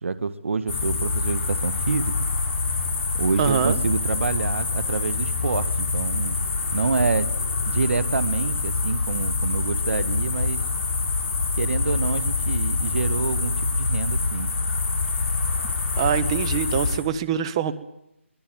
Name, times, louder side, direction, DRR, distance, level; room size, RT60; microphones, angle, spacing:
voice 1, 0.0-2.2 3.1-6.4 6.7-7.3 7.7-10.7 11.6-14.5, right 4 dB, 65° right, 15 dB, 1.8 m, -27 dB
sound 1, 0.7-17.0, left 4 dB, 45° left, 7.6 m, -25 dB
voice 2, 3.4-3.8 16.0-17.7, right 9 dB, 25° right, 12 dB, 1.2 m, -24 dB
23.5 x 20.0 x 9.3 m, 0.80 s
hypercardioid pair, 165°, 7 cm